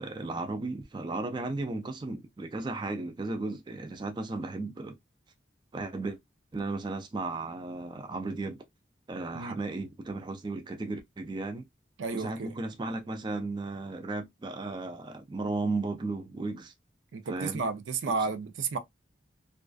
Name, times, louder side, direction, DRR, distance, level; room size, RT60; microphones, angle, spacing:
voice 1, 0.0-5.0 5.7-6.2 6.5-8.6 9.1-11.6 12.1-16.7 17.3-17.6 18.0-18.3, right 3 dB, 25° right, 0.3 m, -35 dB
voice 2, 12.0-12.6 17.1-18.8, right 4 dB, 90° right, 0.5 m, -32 dB
2.4 x 2.3 x 2.2 m
head